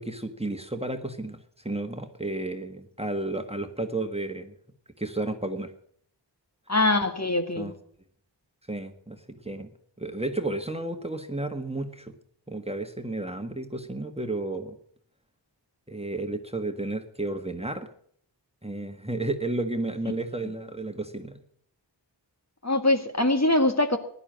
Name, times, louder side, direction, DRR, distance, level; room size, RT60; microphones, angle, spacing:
voice 1, 0.0-4.5 5.0-5.7 7.6-7.7 8.7-9.7 10.0-12.1 12.5-14.8 15.9-17.9 18.6-21.4, right 2 dB, 15° right, 6 dB, 1.6 m, -32 dB
voice 2, 6.7-7.7 22.6-24.0, left 2 dB, 35° left, 6 dB, 1.9 m, -23 dB
15.5 x 11.0 x 7.4 m, 0.64 s
wide cardioid pair, 40°, 44 cm